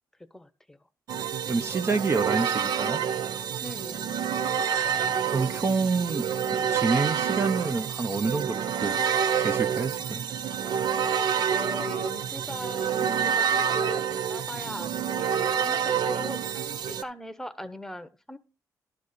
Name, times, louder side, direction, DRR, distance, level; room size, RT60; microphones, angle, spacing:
voice 1, 0.3-0.8 3.6-4.2 11.4-18.4, left 1 dB, 5° left, 0.9 m, -39 dB
sound 1, 1.1-17.0, right 8 dB, 75° right, 0.6 m, -28 dB
voice 2, 1.5-3.1 5.3-6.3 6.7-9.0 9.4-10.2, right 4 dB, 35° right, 0.7 m, -28 dB
11.5 x 4.2 x 6.6 m
cardioid pair, 85°, 7 cm